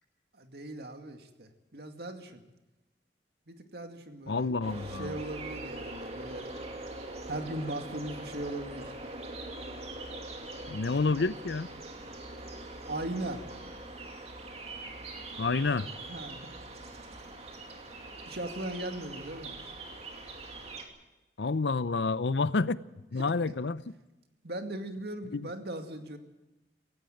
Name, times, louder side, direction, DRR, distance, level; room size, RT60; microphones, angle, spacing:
voice 1, 0.3-2.4 3.5-4.5 4.8-6.5 7.3-8.9 12.9-13.5 16.1-16.6 18.3-19.7 23.2-23.3 24.4-26.2, right 1 dB, 60° right, 6 dB, 2.3 m, -38 dB
voice 2, 4.3-5.2 10.7-11.7 15.4-15.9 21.4-22.8 23.1-23.8 25.3-25.5, left 3 dB, 80° left, 17 dB, 0.7 m, -29 dB
sound 1, 4.6-20.8, right 2 dB, 35° right, 2.6 m, -43 dB
17.0 x 16.5 x 9.3 m, 1.0 s
head